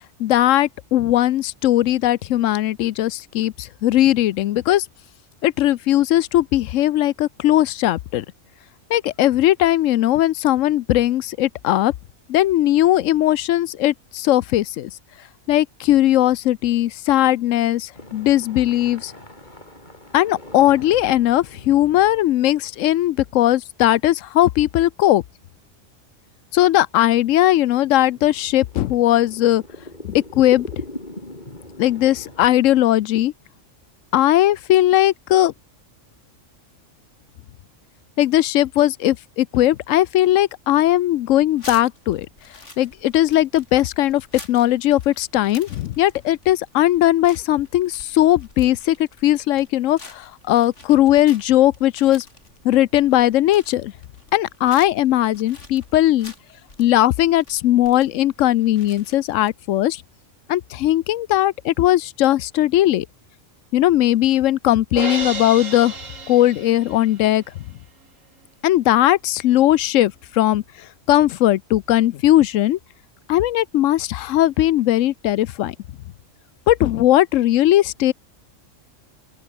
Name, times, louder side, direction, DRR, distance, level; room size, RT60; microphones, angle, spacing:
voice 1, 0.2-4.9 5.4-8.2 8.9-11.9 12.3-14.9 15.5-19.1 20.1-25.2 26.5-29.6 30.0-30.7 31.8-33.3 34.1-35.5 38.2-42.3 42.8-49.0 49.2-52.2 52.6-53.9 54.3-56.3 56.8-60.0 60.5-63.1 63.7-66.0 66.3-67.4 68.6-70.6 71.1-72.8 73.3-75.7 76.7-78.1, left 13 dB, 80° left, 1.0 m, -18 dB
sound 1, 17.9-23.8 24.4-24.5 25.1-25.2 27.0-32.4, left 1 dB, 35° left, 5.3 m, -41 dB
sound 2, 41.6-59.5, left 2 dB, 65° left, 4.7 m, -46 dB
Crash cymbal, 65.0-67.2, right 4 dB, 90° right, 2.7 m, -31 dB
open air
omnidirectional pair, 1.3 m